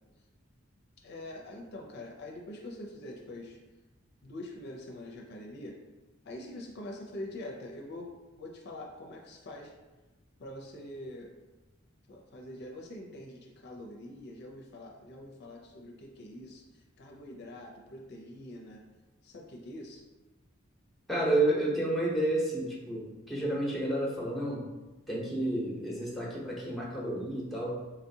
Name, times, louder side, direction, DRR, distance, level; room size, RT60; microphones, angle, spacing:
voice 1, 1.0-3.6 4.2-5.8 6.2-9.7 10.4-11.3 12.1-18.9 19.2-20.0, left 1 dB, 55° left, 1 dB, 0.4 m, -44 dB
voice 2, 21.1-24.6 25.1-27.8, right 1 dB, ahead, -4 dB, 0.7 m, -30 dB
3.9 x 2.7 x 2.7 m, 1.1 s
head